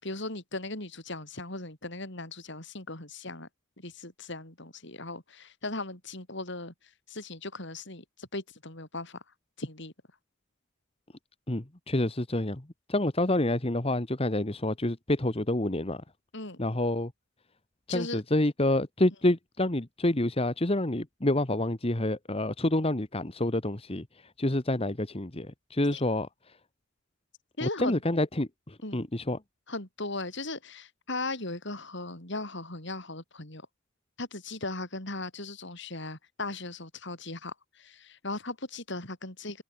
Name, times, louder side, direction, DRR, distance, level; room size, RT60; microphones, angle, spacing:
voice 1, 0.0-3.5 3.8-6.7 7.1-9.2 9.6-9.9 16.3-16.6 17.9-18.2 25.9-26.0 27.6-28.0 28.8-29.0 29.7-33.6 34.2-39.6, left 2 dB, 60° left, 6.0 m, -38 dB
voice 2, 11.5-16.0 16.6-17.1 17.9-26.6 27.6-29.4, left 1 dB, 30° left, 1.5 m, -28 dB
head